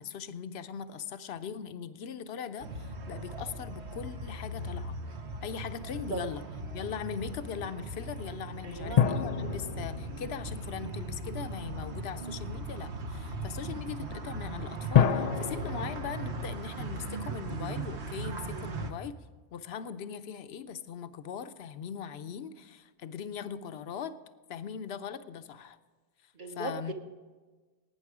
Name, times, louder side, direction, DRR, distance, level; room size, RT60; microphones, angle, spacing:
voice 1, 0.0-5.0 5.4-6.4 6.7-19.1 19.5-24.1 24.5-25.8 26.6-26.9, left 7 dB, 70° left, 11 dB, 0.9 m, -40 dB
sound 1, 2.6-18.9, right 2 dB, 80° right, 1.3 m, -38 dB
voice 2, 8.6-9.1 26.3-26.9, right 3 dB, 50° right, 4 dB, 1.3 m, -37 dB
sound 2, 9.0-11.6 14.9-17.6 17.8-17.9, left 8 dB, 50° left, 0.5 m, -30 dB
17.5 x 9.4 x 4.8 m, 1.3 s
omnidirectional pair, 1.1 m